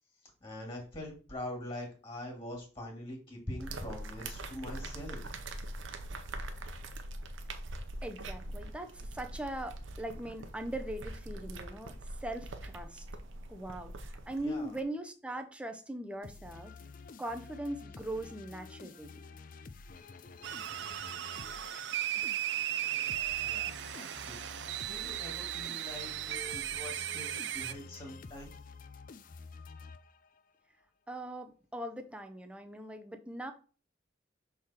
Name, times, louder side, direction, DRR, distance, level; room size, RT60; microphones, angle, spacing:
voice 1, 0.4-5.2 14.4-14.7 23.4-24.4 24.9-28.5, left 1 dB, 30° left, 1 dB, 2.3 m, -43 dB
sound 1, 3.6-14.8, right 1 dB, 85° right, 0.8 m, -43 dB
voice 2, 8.0-11.9 12.2-13.1 13.5-16.7 17.2-19.1 31.1-33.5, right 1 dB, 5° right, 6 dB, 0.6 m, -40 dB
sound 2, 16.2-30.5, left 4 dB, 45° left, 0.4 m, -50 dB
sound 3, 20.4-27.7, right 12 dB, 65° right, 0.3 m, -36 dB
6.2 x 3.7 x 4.3 m, 0.38 s
head